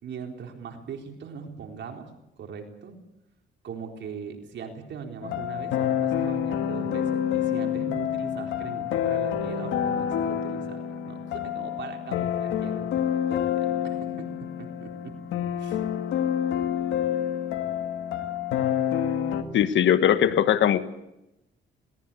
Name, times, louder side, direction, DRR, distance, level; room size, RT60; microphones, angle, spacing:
voice 1, 0.0-2.1 2.4-2.9 3.6-12.9 13.3-14.3 14.6-14.9 15.6-15.8, right 6 dB, 65° right, 3 dB, 4.0 m, -40 dB
sound 1, 5.2-19.4, left 9 dB, 85° left, 1.8 m, -28 dB
voice 2, 19.5-20.8, left 10 dB, 70° left, 12 dB, 1.4 m, -20 dB
21.0 x 19.0 x 8.4 m, 0.89 s
cardioid pair, 90°, 20 cm